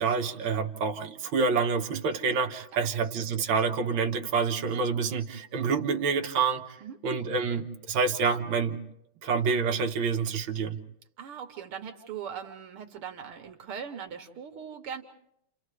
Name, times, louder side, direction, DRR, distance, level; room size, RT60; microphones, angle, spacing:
voice 1, 0.0-6.8 7.0-8.8 9.2-10.8, right 5 dB, 65° right, 4 dB, 1.9 m, -27 dB
voice 2, 11.2-15.0, right 7 dB, 80° right, 5 dB, 2.2 m, -40 dB
30.0 x 29.0 x 3.3 m, 0.79 s
omnidirectional pair, 2.4 m